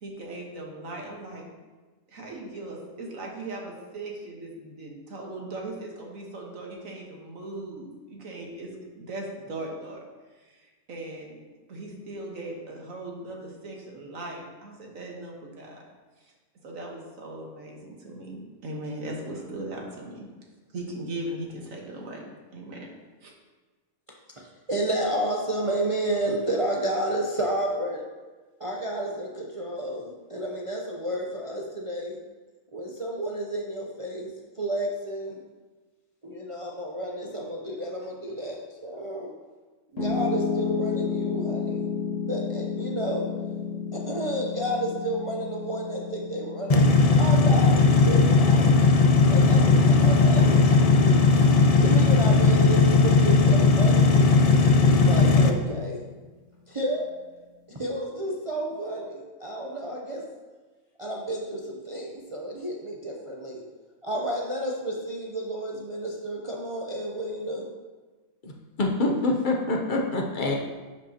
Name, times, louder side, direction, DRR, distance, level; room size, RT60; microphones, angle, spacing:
voice 1, 0.0-1.5 2.1-10.0 10.4-11.4 11.7-15.8 16.2-16.3 16.6-20.3 20.7-22.2 22.5-23.0 23.2-23.3, right 2 dB, 85° right, -1 dB, 1.7 m, -38 dB
voice 2, 24.4-28.1 28.6-32.2 32.7-35.4 36.2-39.3 39.9-41.9 42.2-43.3 43.9-48.9 49.3-51.2 51.8-56.0 56.7-57.0 57.7-60.2 61.0-63.6 64.0-67.7, right 1 dB, 30° right, -2 dB, 0.6 m, -31 dB
Piano, 40.0-52.1, left 6 dB, 75° left, 1.6 m, -33 dB
sound 1, 46.7-55.5, left 3 dB, 60° left, 0.4 m, -18 dB
voice 3, 68.8-70.6, left 2 dB, 45° left, 1 dB, 0.9 m, -25 dB
11.0 x 5.2 x 2.9 m, 1.3 s
omnidirectional pair, 1.4 m